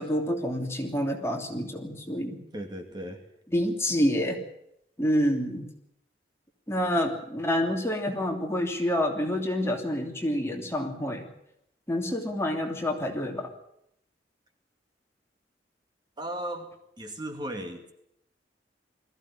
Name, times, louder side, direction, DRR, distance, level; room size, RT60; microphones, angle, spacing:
voice 1, 0.0-2.4 3.5-4.4 5.0-5.7 6.7-11.3 11.9-13.5, equal, 15° left, 2 dB, 3.0 m, -28 dB
voice 2, 2.5-3.2 16.2-16.7 17.0-17.9, right 1 dB, 25° right, 5 dB, 2.3 m, -36 dB
21.0 x 15.5 x 10.0 m, 0.78 s
head